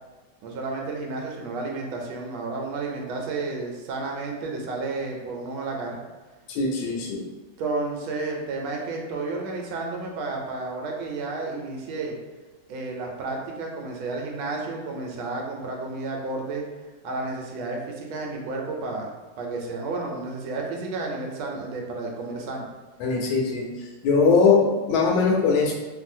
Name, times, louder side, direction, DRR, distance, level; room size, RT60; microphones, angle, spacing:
voice 1, 0.4-6.0 7.6-12.1 12.7-16.6 17.0-19.1 19.4-22.7, right 3 dB, 80° right, 0 dB, 1.4 m, -31 dB
voice 2, 6.5-7.2 23.0-23.7 24.0-25.7, left 4 dB, 80° left, -1 dB, 1.4 m, -21 dB
3.0 x 2.6 x 2.6 m, 1.2 s
omnidirectional pair, 2.2 m